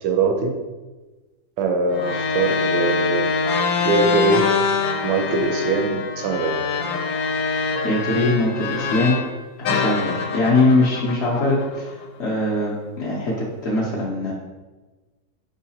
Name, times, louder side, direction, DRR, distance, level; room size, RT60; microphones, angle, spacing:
voice 1, 0.0-0.6 1.6-3.3 3.8-4.5 5.0-6.6, right 3 dB, 75° right, 4 dB, 1.2 m, -22 dB
sound 1, 1.9-9.3 9.6-12.0, left 4 dB, 80° left, 1.3 m, -24 dB
voice 2, 7.8-9.2 9.6-14.3, left 2 dB, 60° left, -6 dB, 0.6 m, -22 dB
4.6 x 3.8 x 2.8 m, 1.2 s
omnidirectional pair, 2.1 m